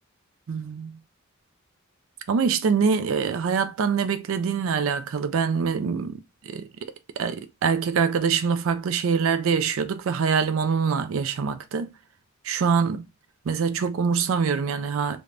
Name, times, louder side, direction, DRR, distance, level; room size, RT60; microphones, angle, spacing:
voice 1, 0.5-1.0 2.3-6.2 6.5-6.7 7.2-11.9 12.5-13.0 13.5-15.2, right 6 dB, 80° right, 0.4 m, -24 dB
3.2 x 2.1 x 2.5 m
head